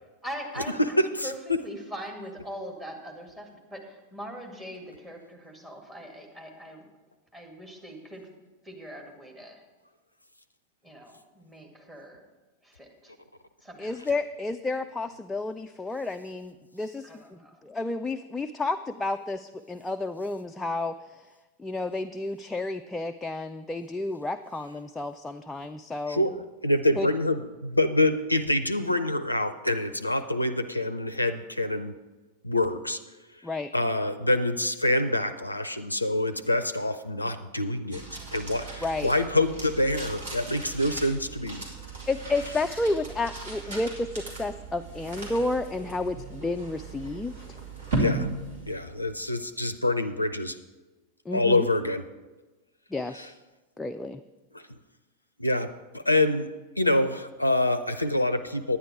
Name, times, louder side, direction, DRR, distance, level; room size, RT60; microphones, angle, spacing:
voice 1, 0.2-1.4 1.6-6.8 7.3-8.3 8.6-9.6 10.8-12.2 12.6-13.1 13.6-13.9 17.0-17.6 38.1-38.6, equal, 15° right, 2 dB, 2.1 m, -42 dB
voice 2, 0.8-1.6 26.1-26.4 26.6-31.9 32.4-33.0 33.7-38.0 38.3-41.6 48.0-48.3 48.6-50.6 51.3-52.0 53.1-53.3 54.5-54.6 55.4-55.7 55.9-56.5 56.8-58.8, left 1 dB, 85° left, 11 dB, 0.4 m, -26 dB
voice 3, 13.8-21.3 21.6-26.2 27.0-27.1 33.4-33.7 38.8-39.1 42.1-47.6 51.3-51.7 52.9-53.4 53.8-54.2, left 2 dB, 10° left, 7 dB, 0.3 m, -31 dB
sound 1, 37.9-49.3, right 2 dB, 60° right, 2.6 m, -36 dB
10.0 x 9.7 x 4.7 m, 1.2 s
figure-of-eight pair, 90°, 0 cm